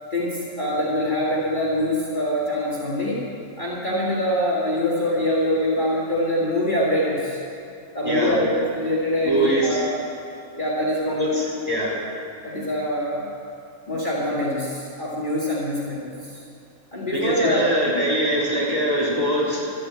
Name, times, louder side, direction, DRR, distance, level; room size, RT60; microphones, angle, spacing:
voice 1, 0.1-3.3 3.6-7.4 7.9-10.0 10.6-11.6 12.4-13.3 13.9-16.4 16.9-17.7, left 1 dB, 35° left, -6 dB, 2.0 m, -24 dB
voice 2, 8.0-8.4 9.2-9.8 11.2-12.0 17.1-19.7, right 1 dB, 15° right, -8 dB, 3.3 m, -23 dB
13.0 x 7.8 x 8.5 m, 2.5 s
omnidirectional pair, 1.5 m